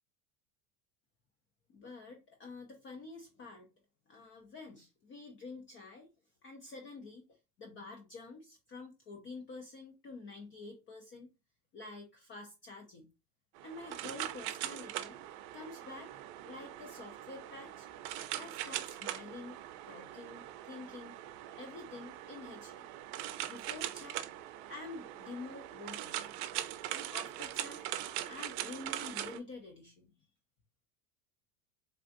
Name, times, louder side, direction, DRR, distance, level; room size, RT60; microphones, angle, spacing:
voice 1, 1.7-3.6 4.1-6.1 6.4-11.3 11.7-13.1 13.6-15.2 15.5-16.1 16.4-17.9 18.4-19.6 19.9-21.1 21.6-22.9 23.5-24.3 24.7-26.3 26.9-27.9 28.3-30.1, left 3 dB, 30° left, 3 dB, 0.3 m, -48 dB
sound 1, 13.6-29.4, right 13 dB, 65° right, 0.5 m, -41 dB
3.4 x 2.4 x 2.5 m, 0.27 s
supercardioid pair, 120°, 50 cm